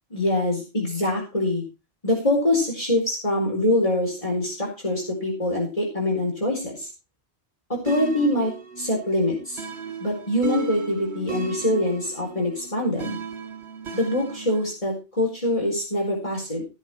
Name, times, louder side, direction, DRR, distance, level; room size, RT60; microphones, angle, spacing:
voice 1, 0.1-1.6 2.0-6.9 7.7-8.5 8.8-9.6 10.0-13.2 13.9-16.6, left 1 dB, 30° left, -2 dB, 4.6 m, -24 dB
sound 1, 7.9-14.7, right 3 dB, 85° right, 1.8 m, -35 dB
15.5 x 7.9 x 4.5 m, 0.29 s
omnidirectional pair, 1.1 m